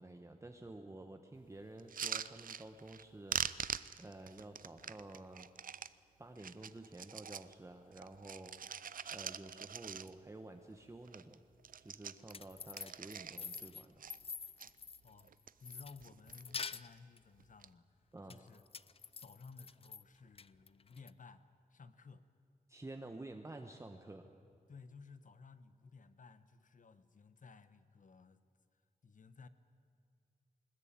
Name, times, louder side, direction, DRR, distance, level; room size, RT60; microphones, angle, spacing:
voice 1, 0.0-3.4 4.0-5.5 6.2-8.5 9.1-11.4 11.8-13.9 18.1-18.4 22.7-24.3, right 2 dB, 20° right, 5 dB, 1.1 m, -51 dB
sound 1, 1.8-3.0 3.3-5.9 6.4-7.5 7.9-10.4 10.7-10.8 11.0-11.3 11.6-13.6 14.0-14.7 15.2-15.7 16.0-16.6 17.4-17.7, right 7 dB, 70° right, 0.6 m, -43 dB
sound 2, 12.1-15.3 15.6-17.2 18.3-20.0 20.4-21.1, left 5 dB, 40° left, 0.5 m, -46 dB
voice 2, 15.6-17.9 18.3-18.6 19.1-22.2 24.7-28.4 29.0-29.5, left 4 dB, 60° left, 13 dB, 1.1 m, -57 dB
20.5 x 20.5 x 8.9 m, 2.3 s
wide cardioid pair, 115°, 15 cm